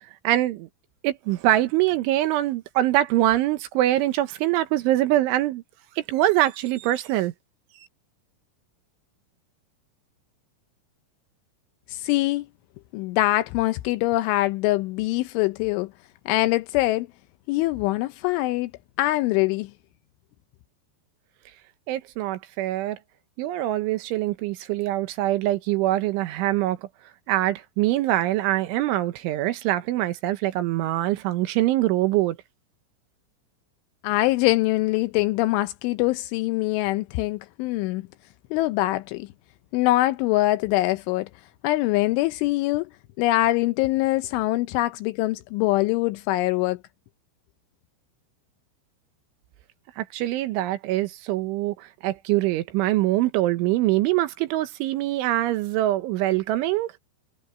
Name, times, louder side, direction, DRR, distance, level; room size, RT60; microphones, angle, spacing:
voice 1, 0.2-0.7 1.0-5.6 6.0-7.3 21.9-23.0 23.4-26.8 27.3-32.4 50.0-57.0, right 15 dB, 75° right, 3.3 m, -24 dB
voice 2, 11.9-12.5 12.9-15.9 16.3-17.1 17.5-18.7 19.0-19.7 34.0-38.0 38.5-39.3 39.7-41.3 41.6-42.9 43.2-46.8, left 18 dB, 80° left, 2.8 m, -23 dB
omnidirectional pair, 6.0 m